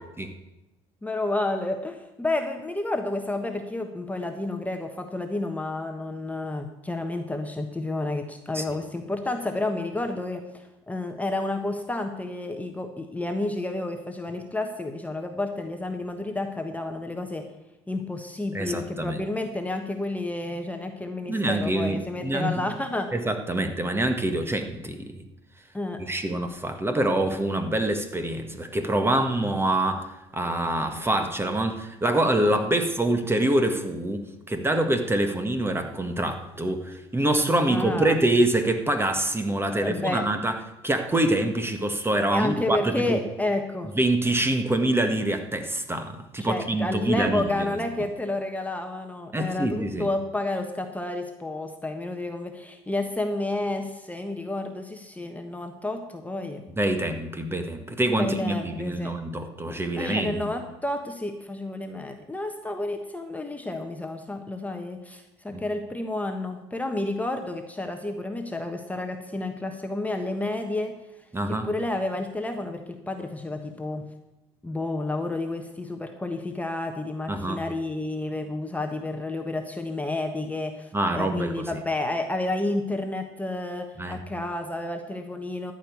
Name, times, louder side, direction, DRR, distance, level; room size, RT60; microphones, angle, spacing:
voice 1, 1.0-17.4 17.9-23.1 25.7-26.2 37.7-38.2 39.7-40.2 42.3-43.9 46.4-56.6 58.2-59.1 60.0-70.9 71.5-74.0 74.6-85.7, left 2 dB, 10° left, 5 dB, 1.3 m, -30 dB
voice 2, 18.5-19.2 21.3-22.5 23.1-25.2 26.1-40.6 40.8-43.2 43.9-47.7 49.3-50.1 56.8-60.5 65.5-65.6 71.3-71.7 77.3-77.6 80.9-81.8 84.0-84.2, right 1 dB, 15° right, 7 dB, 1.6 m, -25 dB
13.5 x 5.4 x 8.4 m, 0.97 s
hypercardioid pair, 65°, 14 cm